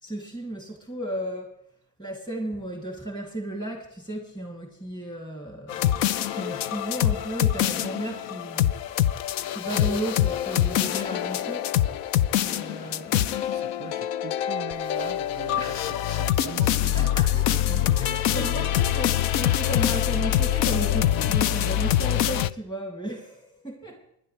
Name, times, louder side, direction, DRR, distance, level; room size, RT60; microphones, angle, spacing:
voice 1, 0.0-1.6 2.0-8.8 9.5-11.7 12.4-13.3 15.6-16.1 16.9-17.4 18.0-24.1, right 1 dB, 10° left, 2.8 m, -34 dB
sound 1, 5.7-22.5, left 12 dB, 70° left, 0.8 m, -25 dB
voice 2, 12.8-18.5 18.9-19.0, right 10 dB, 25° right, 0.6 m, -42 dB
20.0 x 11.5 x 3.3 m
supercardioid pair, 130°, 47 cm